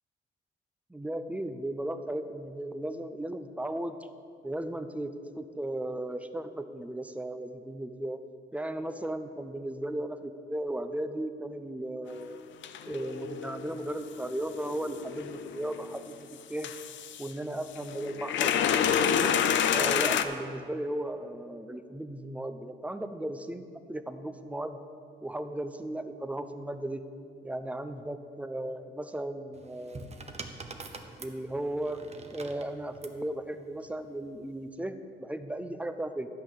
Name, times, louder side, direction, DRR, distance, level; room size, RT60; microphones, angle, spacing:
voice 1, 0.9-3.9 4.4-8.2 8.5-12.4 12.9-16.2 16.5-16.7 17.2-19.3 19.7-24.8 25.2-27.0 27.4-30.1 31.2-32.0 32.3-36.3, right 1 dB, 5° right, 10 dB, 0.6 m, -36 dB
sound 1, 12.1-12.2 12.6-16.0 16.6-17.3 17.8-20.2, left 8 dB, 70° left, 0.6 m, -29 dB
sound 2, 29.5-33.2 34.3-34.6, right 3 dB, 35° right, 1.0 m, -45 dB
12.0 x 5.4 x 8.7 m, 2.5 s
cardioid pair, 90°, 20 cm